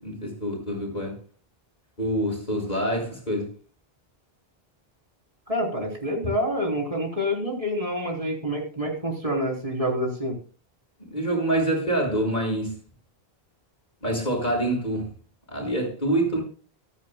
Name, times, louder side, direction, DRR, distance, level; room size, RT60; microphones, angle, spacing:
voice 1, 0.0-1.2 2.0-3.5 11.1-12.7 14.0-15.1 15.5-16.4, right 1 dB, 50° left, 6.1 m, -26 dB
voice 2, 5.5-10.4, equal, 35° right, 3.8 m, -27 dB
24.0 x 10.5 x 2.2 m
omnidirectional pair, 1.0 m